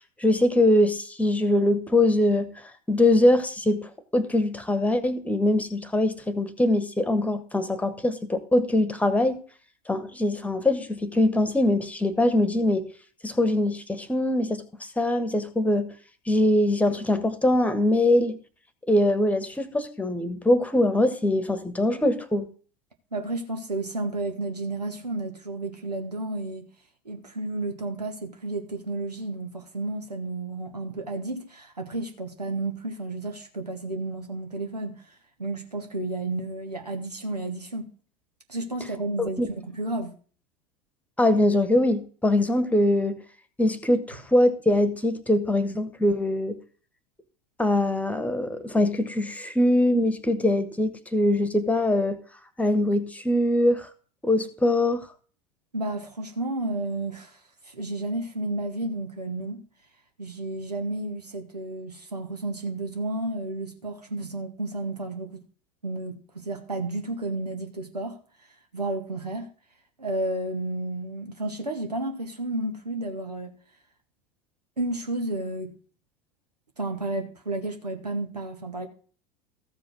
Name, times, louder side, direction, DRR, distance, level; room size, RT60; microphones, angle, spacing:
voice 1, 0.2-2.5 2.9-9.4 9.9-12.9 13.2-15.9 16.3-18.4 18.9-22.5 39.2-39.5 41.2-43.2 43.6-46.6 47.6-52.2 52.6-53.9 54.2-55.0, left 1 dB, 5° left, 1.3 m, -23 dB
voice 2, 23.1-26.7 27.0-35.1 35.4-37.9 38.5-40.1 55.7-59.6 60.2-65.4 65.8-68.2 68.7-69.5 70.0-73.5 74.8-75.7 76.8-78.9, right 2 dB, 85° right, 1.3 m, -32 dB
14.0 x 5.1 x 6.2 m
figure-of-eight pair, 80°, 20 cm